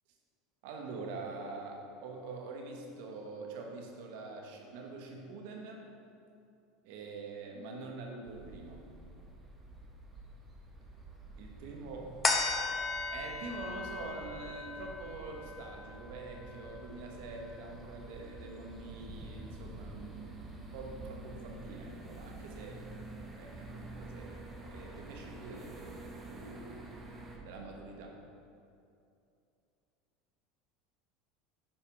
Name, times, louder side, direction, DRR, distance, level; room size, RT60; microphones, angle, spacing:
voice 1, 0.6-5.8 6.8-8.8 11.4-12.2 13.1-22.8 23.4-26.9 27.4-28.2, right 3 dB, 70° right, 1 dB, 1.1 m, -45 dB
sound 1, 8.3-27.4, right 2 dB, 20° right, 1.1 m, -48 dB
sound 2, 12.2-19.0 19.4-19.5, left 3 dB, 25° left, 0.7 m, -38 dB
8.8 x 4.7 x 3.4 m, 2.6 s
hypercardioid pair, 95°, 0 cm